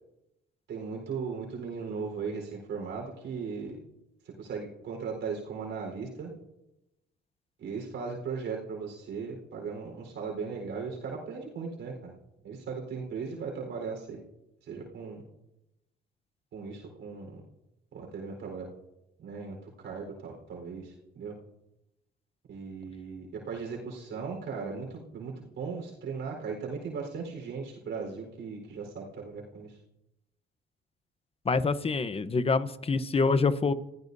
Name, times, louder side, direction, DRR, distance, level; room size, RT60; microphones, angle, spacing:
voice 1, 0.7-3.8 4.4-6.3 7.6-12.1 12.4-14.2 14.7-15.2 16.5-17.4 17.9-18.7 19.2-21.4 22.5-29.7, right 5 dB, 75° right, 0 dB, 4.3 m, -37 dB
voice 2, 31.4-33.7, left 4 dB, 30° left, 13 dB, 0.9 m, -26 dB
29.0 x 15.5 x 2.7 m, 0.91 s
cardioid pair, 90°, 20 cm